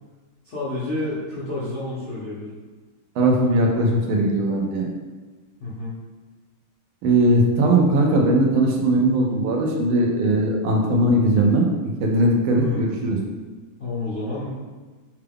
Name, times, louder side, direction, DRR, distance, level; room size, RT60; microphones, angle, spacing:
voice 1, 0.4-2.5 5.6-6.0 12.5-12.9 13.8-14.5, left 2 dB, 60° left, -9 dB, 0.7 m, -29 dB
voice 2, 3.2-4.9 7.0-11.7 12.0-13.2, right 1 dB, 85° right, 0 dB, 1.6 m, -19 dB
5.7 x 2.3 x 3.5 m, 1.3 s
omnidirectional pair, 2.3 m